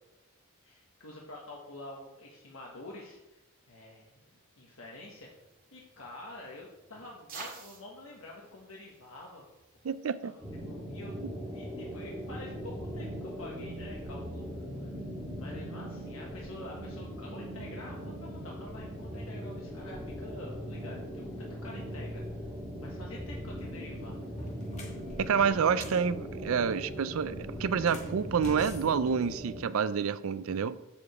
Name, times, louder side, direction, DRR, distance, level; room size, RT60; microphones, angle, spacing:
voice 1, 0.6-3.4 3.7-4.1 4.6-5.3 5.7-9.4 10.2-10.3 10.6-11.2 11.5-14.9 15.4-22.4 22.8-24.5, left 2 dB, 75° left, 1.3 m, -48 dB
sound 1, 4.9-10.1, right 4 dB, 45° right, 1.9 m, -51 dB
voice 2, 9.8-10.3 25.2-30.8, right 6 dB, 75° right, 0.4 m, -28 dB
sound 2, 10.4-29.6, equal, ahead, 1.8 m, -40 dB
sound 3, 23.5-23.7 24.2-26.1 27.7-29.8, left 1 dB, 35° left, 1.5 m, -47 dB
7.3 x 4.8 x 6.9 m
head